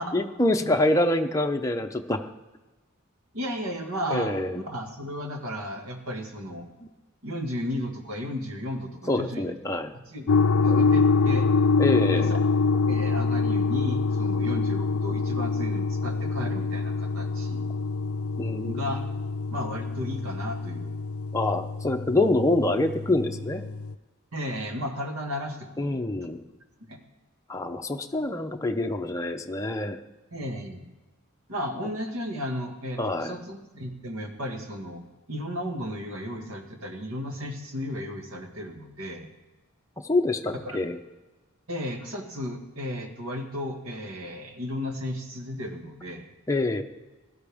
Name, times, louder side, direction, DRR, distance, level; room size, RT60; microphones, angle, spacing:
voice 1, 0.1-2.2 4.1-4.6 6.8-6.9 9.1-9.9 10.7-10.8 11.8-12.4 18.4-18.8 21.3-23.6 25.8-26.4 27.5-30.0 33.0-33.4 40.0-41.0 46.5-46.8, left 2 dB, 15° left, 3 dB, 0.6 m, -26 dB
voice 2, 3.3-6.7 7.2-9.6 9.9-11.5 12.1-12.3 12.7-17.7 18.6-19.0 19.5-21.0 24.3-26.0 26.2-26.3 26.8-27.0 30.3-30.8 31.5-39.3 40.7-40.8 41.7-46.3, equal, 80° right, 3 dB, 1.8 m, -34 dB
sound 1, 10.3-23.9, left 4 dB, 80° left, 0.4 m, -25 dB
16.5 x 12.0 x 3.5 m, 1.2 s
head